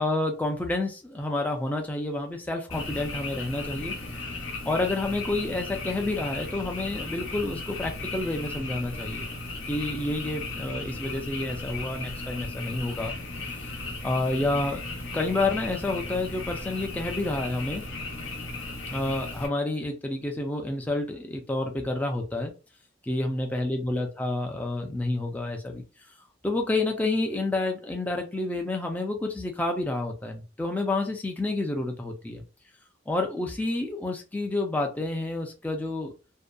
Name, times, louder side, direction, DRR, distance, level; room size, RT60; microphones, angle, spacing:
voice 1, 0.0-4.0 4.7-9.3 9.7-13.1 14.0-14.8 15.1-17.8 18.9-22.5 23.0-25.8 26.4-32.4 33.1-36.1, left 2 dB, 10° left, 3 dB, 0.3 m, -29 dB
Frog, 2.7-19.5, left 2 dB, 80° left, 0.7 m, -36 dB
2.6 x 2.1 x 2.3 m, 0.31 s
head